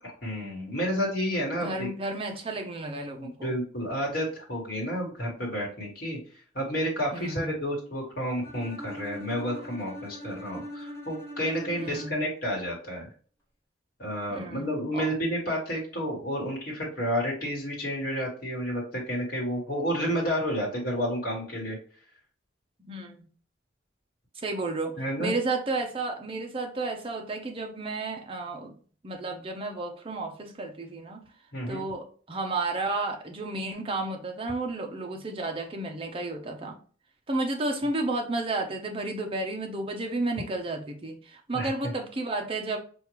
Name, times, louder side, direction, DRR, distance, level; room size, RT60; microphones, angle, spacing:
voice 1, 0.0-1.9 3.2-6.2 6.5-13.1 14.0-21.8 25.0-25.3 31.5-31.8 41.5-41.7, equal, 50° left, 1.4 m, -30 dB
voice 2, 1.5-3.5 7.1-7.5 11.8-12.2 14.3-14.7 14.9-15.1 22.9-23.3 24.4-28.7 29.0-31.3 31.7-36.8 37.3-42.8, right 2 dB, 30° right, 0.6 m, -32 dB
Bowed string instrument, 8.4-12.4, equal, 15° left, 1.2 m, -42 dB
5.0 x 2.4 x 3.0 m
head